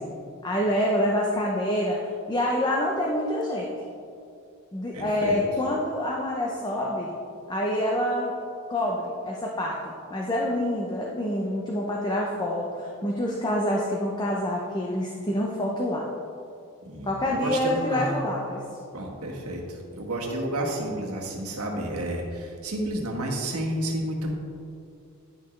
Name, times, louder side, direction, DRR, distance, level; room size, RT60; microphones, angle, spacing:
voice 1, 0.4-2.0 2.3-3.7 4.7-7.1 7.5-8.3 8.7-16.1 17.0-18.6, left 1 dB, 20° left, -2 dB, 0.6 m, -27 dB
voice 2, 4.9-5.4 16.8-18.2 18.9-24.3, right 1 dB, 90° right, -1 dB, 1.3 m, -31 dB
10.0 x 6.3 x 3.2 m, 2.4 s
head